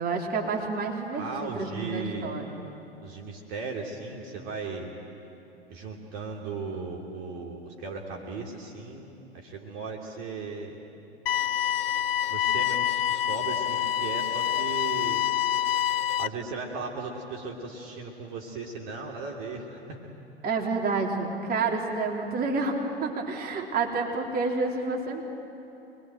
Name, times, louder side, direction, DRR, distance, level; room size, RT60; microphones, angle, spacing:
voice 1, 0.0-2.6 20.4-25.2, right 3 dB, 30° right, 0 dB, 3.4 m, -29 dB
voice 2, 1.1-2.3 3.0-4.9 5.7-10.8 12.3-15.2 16.2-20.0, right 4 dB, 45° right, 0 dB, 3.0 m, -37 dB
sound 1, 11.3-16.3, left 11 dB, 60° left, 0.6 m, -27 dB
26.0 x 21.5 x 9.2 m, 2.9 s
figure-of-eight pair, 95°, 32 cm